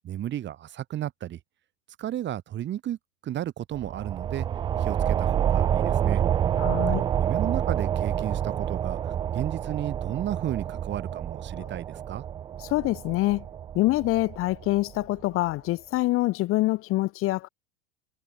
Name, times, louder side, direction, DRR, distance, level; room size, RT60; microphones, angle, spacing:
voice 1, 0.0-1.4 2.0-4.5 4.8-6.2 7.2-12.3, right 12 dB, 30° right, 2.6 m, -33 dB
sound 1, 3.7-14.9, right 9 dB, 15° right, 0.4 m, -28 dB
voice 2, 6.6-7.0 11.6-11.7 12.6-13.5 13.7-17.5, left 18 dB, 35° left, 1.5 m, -25 dB
figure-of-eight pair, 85°, 36 cm